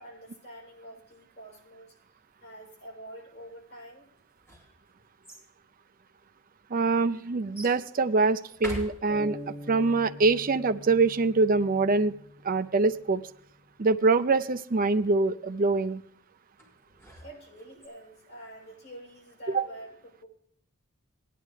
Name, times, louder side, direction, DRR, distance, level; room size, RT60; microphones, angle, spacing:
voice 1, 0.0-1.9 2.4-4.1 17.2-20.3, right 1 dB, 50° left, -2 dB, 7.1 m, -46 dB
sound 1, 4.2-5.5 6.3-6.4 7.5-7.8 8.5-9.5 16.6-17.9, equal, 10° left, 4.0 m, -43 dB
voice 2, 6.7-9.4 9.7-12.1 12.4-13.2 13.8-16.0 19.5-19.7, right 3 dB, 40° right, 11 dB, 0.5 m, -24 dB
sound 2, 9.1-12.9, left 1 dB, 5° right, 5.1 m, -44 dB
18.0 x 11.0 x 3.3 m, 0.66 s
head